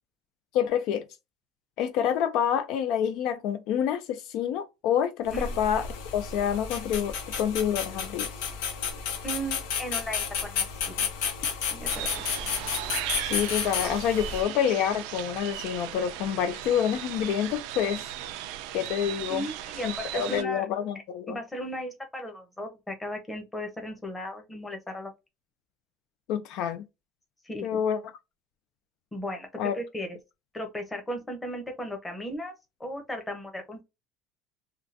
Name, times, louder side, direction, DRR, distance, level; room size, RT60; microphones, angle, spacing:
voice 1, 0.5-1.0 1.8-5.9 6.1-8.3 13.2-18.0 18.7-19.4 19.8-21.4 26.3-26.8 27.6-28.0 29.6-29.7, left 9 dB, 60° left, 0.5 m, -27 dB
sound 1, 5.3-14.4, left 6 dB, 85° left, 1.0 m, -32 dB
voice 2, 9.2-11.1 11.7-12.2 19.3-20.6 21.3-25.1 27.4-27.8 29.1-30.1 30.5-32.5 32.8-33.8, equal, 10° left, 0.9 m, -36 dB
sound 2, 11.9-20.4, right 13 dB, 80° right, 0.4 m, -37 dB
3.6 x 2.3 x 2.6 m
cardioid pair, 155°, 0 cm